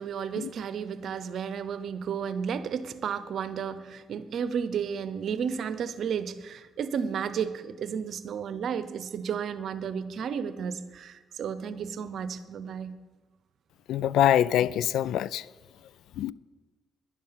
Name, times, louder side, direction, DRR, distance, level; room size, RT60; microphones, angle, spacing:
voice 1, 0.0-13.0, right 7 dB, 65° right, 0.8 m, -33 dB
voice 2, 13.9-15.4 16.2-16.3, left 11 dB, 80° left, 0.3 m, -24 dB
11.0 x 11.0 x 5.8 m
cardioid pair, 90°, 0 cm